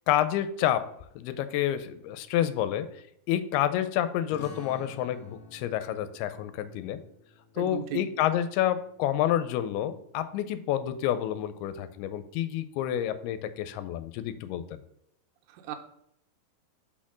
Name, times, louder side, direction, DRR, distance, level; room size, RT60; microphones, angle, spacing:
voice 1, 0.1-0.9 1.2-2.9 3.3-7.0 7.6-14.8, left 11 dB, 85° left, 12 dB, 2.5 m, -29 dB
sound 1, 4.3-9.5, left 4 dB, 70° left, 1.4 m, -51 dB
voice 2, 7.6-8.0 15.5-15.8, right 9 dB, 80° right, 6 dB, 2.7 m, -35 dB
5.7 x 4.3 x 6.0 m, 0.73 s
omnidirectional pair, 4.5 m